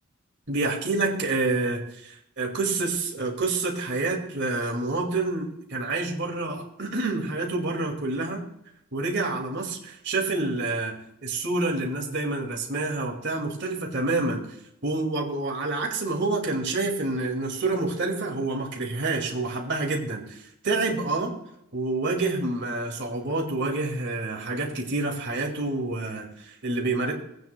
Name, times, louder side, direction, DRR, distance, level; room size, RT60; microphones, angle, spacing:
voice 1, 0.5-8.5 8.9-10.9 11.2-14.4 14.8-21.4 21.7-27.1, right 3 dB, 55° right, 1 dB, 2.2 m, -28 dB
18.5 x 9.2 x 2.2 m, 0.79 s
head